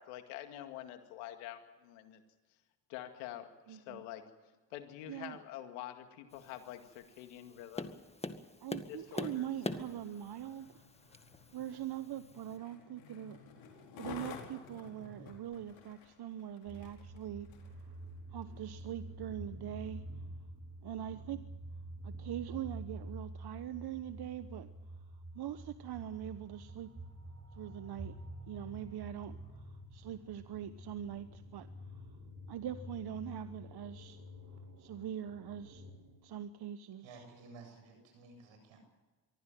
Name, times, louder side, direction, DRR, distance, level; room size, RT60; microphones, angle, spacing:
voice 1, 0.0-2.2 2.9-4.3 4.7-8.0 8.9-9.4, left 12 dB, 90° left, 2.3 m, -47 dB
voice 2, 3.7-4.0 5.1-5.4 8.6-10.8 11.5-13.4 13.7-18.0 18.3-20.0 20.8-21.4 22.0-24.7 25.3-26.9 27.6-28.2 28.5-32.2 32.5-34.2 34.8-35.9 36.2-37.2, right 10 dB, 55° right, 1.1 m, -43 dB
Tap, 6.3-12.6, left 2 dB, 15° left, 1.9 m, -45 dB
Skateboard, 9.0-17.8 18.4-18.5, left 6 dB, 75° left, 4.6 m, -53 dB
sound 1, 16.7-36.1, right 1 dB, 35° right, 7.2 m, -48 dB
voice 3, 37.0-38.8, right 3 dB, 75° right, 7.8 m, -54 dB
23.5 x 15.0 x 9.2 m
supercardioid pair, 60°, 46 cm